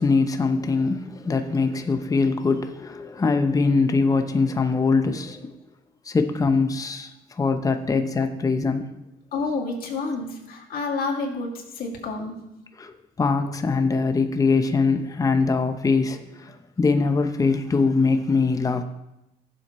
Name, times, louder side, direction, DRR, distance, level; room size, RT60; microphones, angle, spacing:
voice 1, 0.0-5.6 6.1-8.9 12.8-12.9 13.2-18.8, left 4 dB, 20° left, 0.7 m, -22 dB
voice 2, 9.3-12.4, left 3 dB, 60° left, 2.3 m, -29 dB
15.5 x 7.4 x 3.1 m
cardioid pair, 110°, 17 cm